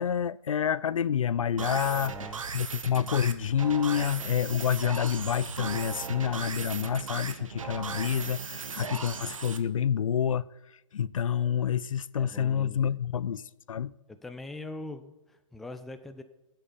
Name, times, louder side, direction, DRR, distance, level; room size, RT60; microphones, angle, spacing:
voice 1, 0.0-2.2 2.5-14.0, left 8 dB, 80° left, 0.5 m, -28 dB
sound 1, 1.6-9.6, right 5 dB, 85° right, 1.2 m, -37 dB
voice 2, 1.8-2.4 12.2-13.0 14.2-16.2, left 2 dB, ahead, 0.3 m, -42 dB
16.0 x 7.8 x 5.1 m
hypercardioid pair, 145°, 17 cm